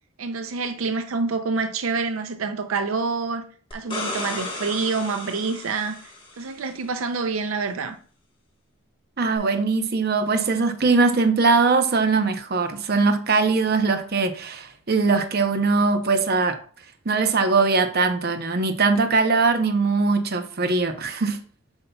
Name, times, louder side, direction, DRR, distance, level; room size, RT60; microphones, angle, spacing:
voice 1, 0.2-3.4 3.7-6.0 6.4-8.0, right 4 dB, 85° right, 0.5 m, -27 dB
sound 1, 3.7-6.5 9.4-9.5, left 2 dB, 25° left, 1.3 m, -34 dB
voice 2, 9.2-16.6 17.1-21.4, right 4 dB, 50° right, 0.7 m, -21 dB
8.0 x 5.4 x 2.3 m
head